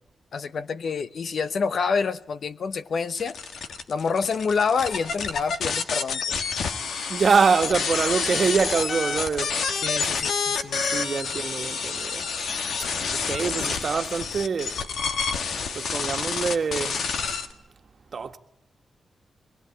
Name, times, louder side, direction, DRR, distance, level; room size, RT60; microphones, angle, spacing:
voice 1, 0.3-3.4 3.9-6.4 9.8-10.8, left 5 dB, 60° left, 0.9 m, -27 dB
sound 1, 3.2-17.5, left 5 dB, 85° left, 1.7 m, -28 dB
voice 2, 7.1-9.6 10.8-12.3 13.2-14.8 15.7-17.0 18.1-18.4, right 5 dB, 50° right, 1.6 m, -24 dB
23.0 x 18.0 x 8.4 m
wide cardioid pair, 115°, 0 cm